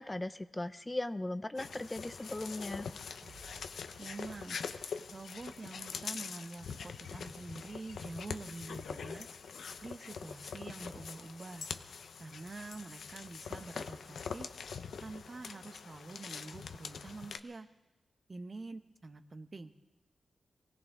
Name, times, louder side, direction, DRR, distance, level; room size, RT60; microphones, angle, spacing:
voice 1, 0.0-2.9, left 1 dB, 20° left, 12 dB, 0.5 m, -38 dB
sound 1, 1.6-17.4, left 6 dB, 85° left, 0.7 m, -44 dB
sound 2, 3.2-6.5, right 2 dB, 75° right, 2.5 m, -61 dB
voice 2, 4.0-4.6 5.1-9.3 9.8-11.7 12.2-14.5 15.0-17.7 18.3-19.7, right 3 dB, 40° right, 9 dB, 0.9 m, -46 dB
23.5 x 17.0 x 3.6 m, 1.1 s
wide cardioid pair, 85°, 0 cm